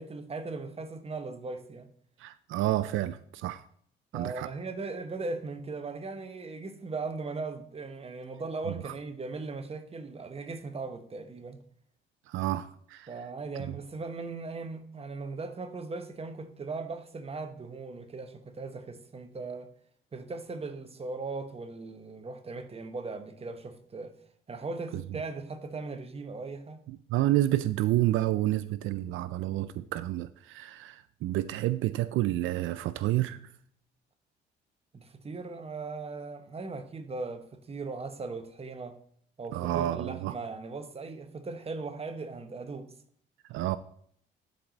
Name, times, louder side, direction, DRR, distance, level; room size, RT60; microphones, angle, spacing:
voice 1, 0.0-1.9 4.1-11.6 13.1-19.7 20.1-24.2 24.5-26.9 34.9-39.0 39.4-42.9, right 3 dB, 30° right, 1.1 m, -38 dB
voice 2, 2.2-3.6 4.1-4.5 8.7-8.9 12.3-13.1 13.6-13.8 24.9-25.0 26.9-33.5 39.5-40.4 43.5-43.8, right 15 dB, 85° right, 0.4 m, -29 dB
11.0 x 4.7 x 4.0 m
cardioid pair, 90°, 20 cm